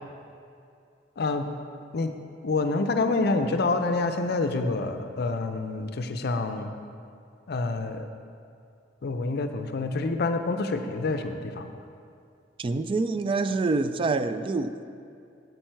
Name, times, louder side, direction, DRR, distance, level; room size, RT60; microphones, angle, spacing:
voice 1, 1.2-1.5 1.9-2.1 2.4-6.7 7.5-8.1 9.0-11.8, left 3 dB, 60° left, 7 dB, 0.5 m, -27 dB
voice 2, 12.6-14.8, right 3 dB, 30° right, 11 dB, 0.3 m, -26 dB
9.0 x 8.1 x 4.5 m, 2.4 s
head